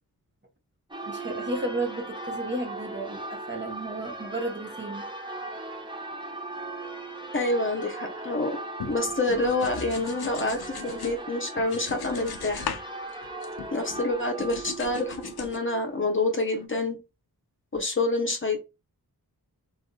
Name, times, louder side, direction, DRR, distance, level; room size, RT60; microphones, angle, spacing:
Church bell, 0.9-16.6, right 2 dB, 15° right, 0.6 m, -38 dB
voice 1, 1.1-5.0, right 2 dB, 30° right, 3 dB, 0.9 m, -33 dB
voice 2, 7.3-8.6 8.9-12.7 13.7-17.0 17.7-18.6, left 2 dB, 35° left, 3 dB, 0.8 m, -27 dB
sound 1, 8.8-11.2 11.6-12.9 13.1-14.0 14.4-15.6, left 7 dB, 90° left, 0.5 m, -38 dB
3.9 x 2.6 x 2.2 m, 0.26 s
wide cardioid pair, 75°, 37 cm